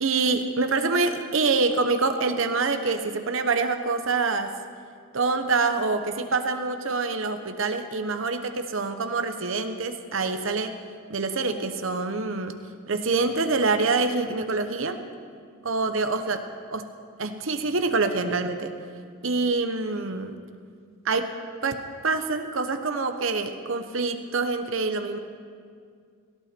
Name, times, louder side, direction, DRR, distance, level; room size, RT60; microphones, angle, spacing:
voice 1, 0.0-4.5 5.1-10.8 11.1-12.6 12.9-15.0 15.6-16.4 16.7-16.9 17.2-18.7 19.2-20.4 21.0-21.3 21.6-25.2, right 3 dB, 75° right, 8 dB, 1.0 m, -26 dB
17.0 x 17.0 x 4.5 m, 2.1 s
head